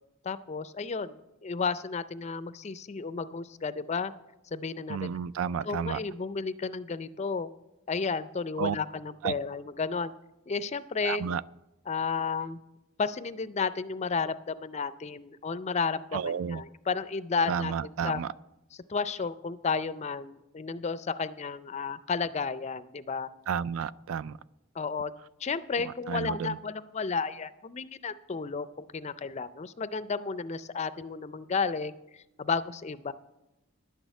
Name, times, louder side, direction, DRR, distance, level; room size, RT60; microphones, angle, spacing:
voice 1, 0.2-4.1 4.5-5.1 5.6-7.5 7.9-10.1 10.5-11.3 11.9-12.6 13.0-18.2 18.9-23.3 24.8-25.1 25.4-28.7 28.9-33.1, left 5 dB, 30° left, 0.4 m, -32 dB
voice 2, 4.9-6.0 8.6-8.8 9.2-9.3 11.0-11.4 16.1-16.6 17.5-18.3 23.5-24.4 26.1-26.6, right 7 dB, 75° right, 0.3 m, -31 dB
11.0 x 6.3 x 7.9 m
head